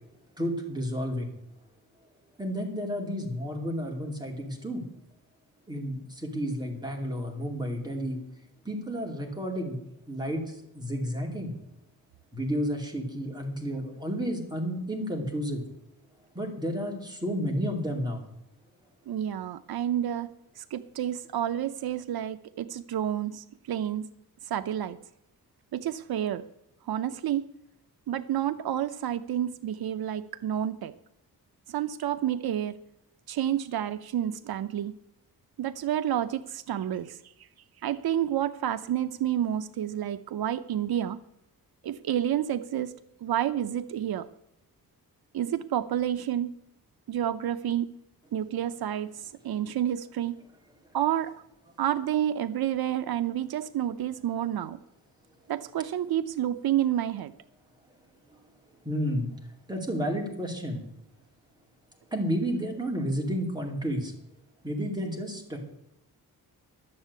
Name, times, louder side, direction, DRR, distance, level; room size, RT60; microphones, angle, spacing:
voice 1, 0.4-1.3 2.4-4.8 5.7-8.2 8.6-9.8 10.1-11.5 12.3-15.6 16.3-18.2 58.8-59.3 59.7-60.8 62.1-64.1 64.6-65.6, equal, 10° right, 0 dB, 2.5 m, -31 dB
voice 2, 19.1-20.3 20.6-24.1 24.5-25.0 25.7-26.5 26.9-27.5 28.1-30.9 31.7-32.8 33.3-34.9 35.6-37.2 37.8-41.2 41.8-42.9 43.2-44.3 45.3-46.5 47.1-47.9 48.3-49.1 49.4-50.4 50.9-51.3 51.8-54.8 55.5-57.3, right 11 dB, 85° right, 12 dB, 0.6 m, -29 dB
12.0 x 7.4 x 8.1 m, 0.81 s
wide cardioid pair, 160°, 36 cm